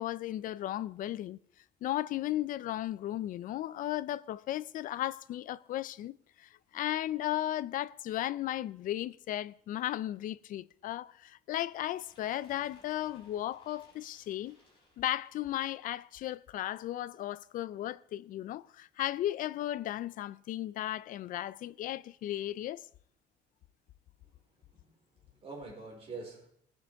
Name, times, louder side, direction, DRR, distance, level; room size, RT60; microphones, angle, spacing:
voice 1, 0.0-1.4 1.8-14.6 15.0-22.8, left 13 dB, 45° left, 0.4 m, -35 dB
sound 1, 11.7-15.7, left 1 dB, 25° left, 6.2 m, -64 dB
voice 2, 24.7-26.5, right 3 dB, 30° right, 4.3 m, -46 dB
19.0 x 6.9 x 4.7 m
cardioid pair, 160°, 19 cm